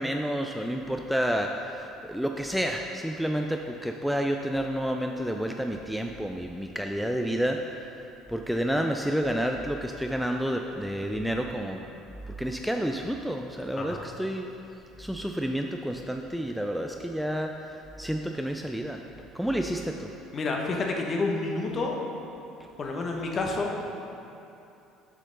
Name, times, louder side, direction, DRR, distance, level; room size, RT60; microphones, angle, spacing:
voice 1, 0.0-7.9 8.3-11.9 12.3-14.5 15.0-19.0 19.3-20.1, equal, ahead, 3 dB, 0.4 m, -30 dB
voice 2, 20.3-22.0 22.8-23.9, left 3 dB, 40° left, 1 dB, 1.1 m, -29 dB
7.6 x 6.3 x 3.9 m, 2.8 s
figure-of-eight pair, 60°, 0 cm